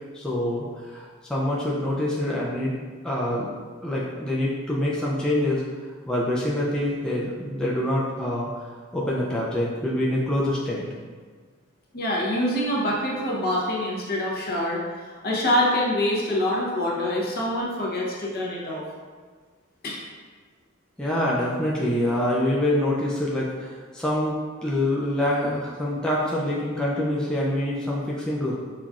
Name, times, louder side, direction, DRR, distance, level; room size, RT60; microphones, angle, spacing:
voice 1, 0.1-2.8 3.0-3.5 3.8-5.6 6.1-8.7 8.9-10.8 21.0-28.5, left 1 dB, 5° left, -6 dB, 0.4 m, -25 dB
voice 2, 11.9-18.8 19.8-20.0, left 1 dB, 50° left, -3 dB, 0.8 m, -25 dB
5.6 x 2.3 x 2.4 m, 1.5 s
head